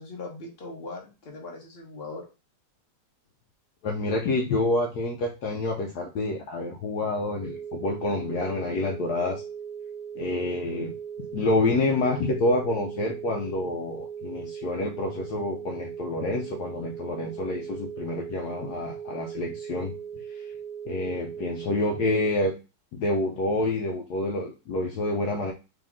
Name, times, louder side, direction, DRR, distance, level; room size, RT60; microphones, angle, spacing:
voice 1, 0.0-2.2, left 3 dB, 40° left, 0 dB, 1.2 m, -39 dB
voice 2, 3.8-9.4 10.2-11.0 11.3-19.9 20.3-20.5 20.9-22.5 22.9-25.5, left 2 dB, 70° left, 1 dB, 1.1 m, -28 dB
sound 1, 7.4-22.4, right 7 dB, 90° right, 0.6 m, -39 dB
3.5 x 2.9 x 3.6 m, 0.29 s
omnidirectional pair, 1.9 m